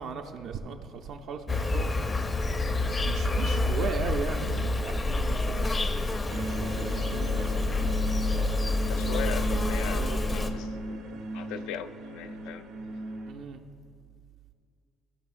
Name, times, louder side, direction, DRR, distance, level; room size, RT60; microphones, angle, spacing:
voice 1, 0.0-1.9 3.0-6.0 6.8-8.0 9.1-9.6 9.8-10.2 13.3-13.6, right 6 dB, 60° right, 4 dB, 0.4 m, -37 dB
Insect, 1.5-10.5, left 2 dB, 25° left, 0.5 m, -28 dB
sound 1, 6.3-13.3, right 1 dB, 85° right, 0.9 m, -37 dB
voice 2, 8.9-12.7, left 9 dB, 80° left, 11 dB, 0.3 m, -39 dB
15.5 x 5.5 x 2.5 m, 2.2 s
cardioid pair, 125°, 0 cm